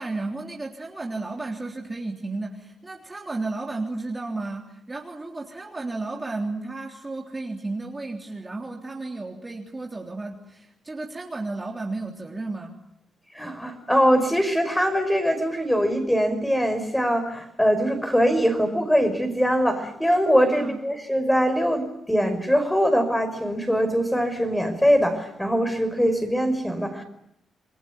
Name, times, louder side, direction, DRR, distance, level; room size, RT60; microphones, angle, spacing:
voice 1, 0.0-12.7 20.5-20.8, right 2 dB, 20° right, 1 dB, 3.4 m, -33 dB
voice 2, 13.3-27.0, equal, 5° left, 7 dB, 5.4 m, -22 dB
28.5 x 21.5 x 9.5 m, 0.78 s
cardioid pair, 110°, 0 cm